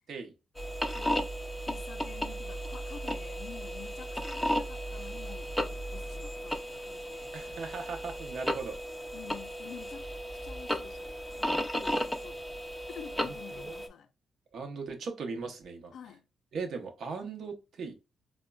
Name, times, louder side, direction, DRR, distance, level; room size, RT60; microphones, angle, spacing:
sound 1, 0.5-13.9, equal, 5° left, 0.4 m, -35 dB
voice 1, 0.9-1.3 1.6-7.3 9.1-10.1 10.4-12.4 12.9-14.1 15.9-16.3, left 8 dB, 70° left, 0.4 m, -49 dB
voice 2, 7.3-8.8 13.2-13.7 14.5-15.9 16.5-17.9, right 4 dB, 65° right, 0.7 m, -38 dB
4.8 x 2.1 x 2.2 m
cardioid pair, 130°, 0 cm